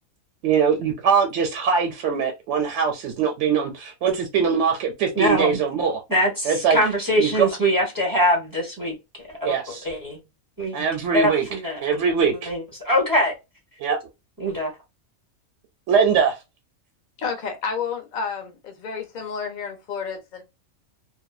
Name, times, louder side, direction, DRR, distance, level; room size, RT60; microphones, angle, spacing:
voice 1, 0.4-6.0 6.4-6.8 7.2-7.5 9.4-9.8 10.7-11.4 11.8-12.5 13.8-14.0 15.9-16.4, right 6 dB, 65° right, 0.8 m, -22 dB
voice 2, 5.1-5.6 6.1-10.2 10.6-10.8 11.1-12.0 12.5-13.3 14.4-14.7, equal, 20° right, 0.6 m, -23 dB
voice 3, 17.2-20.4, left 6 dB, 50° left, 0.6 m, -30 dB
2.6 x 2.1 x 2.3 m
omnidirectional pair, 1.5 m